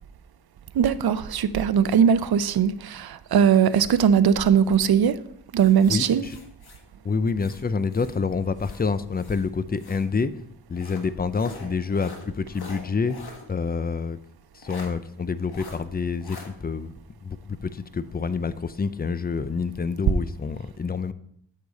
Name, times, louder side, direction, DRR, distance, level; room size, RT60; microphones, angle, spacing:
voice 1, 0.7-5.2 5.5-6.3, right 8 dB, 70° right, 13 dB, 0.6 m, -20 dB
sound 1, 5.6-8.2 8.6-10.1 10.7-13.5 13.8-13.9 14.6-14.9 15.5-15.8 16.2-16.5, left 3 dB, 70° left, 1.6 m, -44 dB
voice 2, 5.9-6.4 7.0-10.3 10.7-13.2 13.5-14.2 14.5-16.9 17.2-21.1, left 5 dB, 25° left, 14 dB, 0.4 m, -27 dB
8.3 x 6.6 x 4.0 m, 0.69 s
wide cardioid pair, 80°, 39 cm